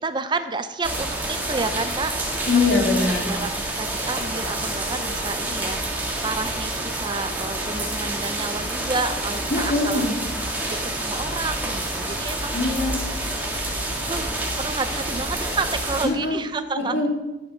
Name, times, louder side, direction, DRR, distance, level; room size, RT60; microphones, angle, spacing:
voice 1, 0.0-2.7 3.0-10.1 10.8-12.6 14.0-14.3 14.6-17.1, right 3 dB, 25° right, 10 dB, 0.5 m, -30 dB
sound 1, 0.8-16.1, right 1 dB, 10° right, 2.0 m, -28 dB
voice 2, 2.5-3.3 9.5-10.2 12.5-13.0 16.0-16.4 16.8-17.1, left 3 dB, 70° left, -1 dB, 2.7 m, -22 dB
11.5 x 6.8 x 5.8 m, 1.0 s
head